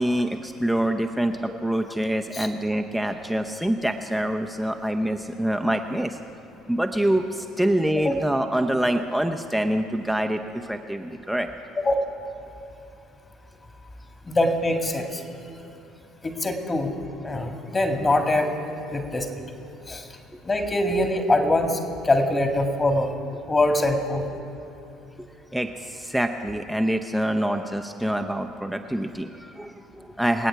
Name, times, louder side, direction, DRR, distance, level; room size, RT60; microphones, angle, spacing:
voice 1, 0.0-6.2 6.7-11.5 25.5-30.5, right 1 dB, ahead, 4 dB, 0.7 m, -25 dB
voice 2, 14.3-15.2 16.2-16.9 17.2-18.5 18.9-19.3 19.9-20.1 20.4-23.1 23.5-24.2, left 1 dB, 20° left, 4 dB, 2.0 m, -23 dB
26.0 x 9.0 x 4.7 m, 2.9 s
figure-of-eight pair, 55°, 0 cm